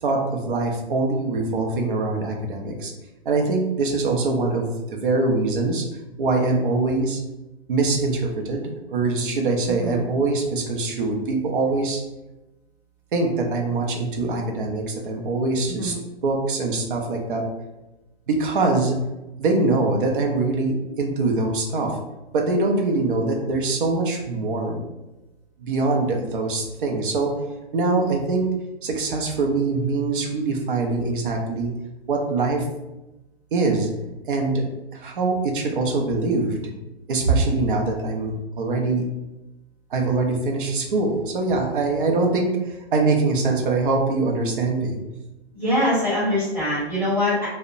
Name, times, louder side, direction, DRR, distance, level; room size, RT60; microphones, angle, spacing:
voice 1, 0.0-2.9 3.2-4.7 5.0-5.8 6.2-7.2 7.7-12.0 13.1-15.9 16.2-17.4 18.3-19.0 19.4-22.0 22.3-24.8 25.6-27.3 27.7-28.5 28.8-31.7 32.1-32.6 33.5-33.9 34.3-34.6 34.9-36.6 37.1-39.0 39.9-45.0, right 3 dB, 50° right, 1 dB, 0.5 m, -23 dB
voice 2, 9.7-10.0 15.8-16.0 45.5-47.5, left 1 dB, 5° right, -17 dB, 1.1 m, -23 dB
2.7 x 2.0 x 2.5 m, 1.0 s
hypercardioid pair, 175°, 32 cm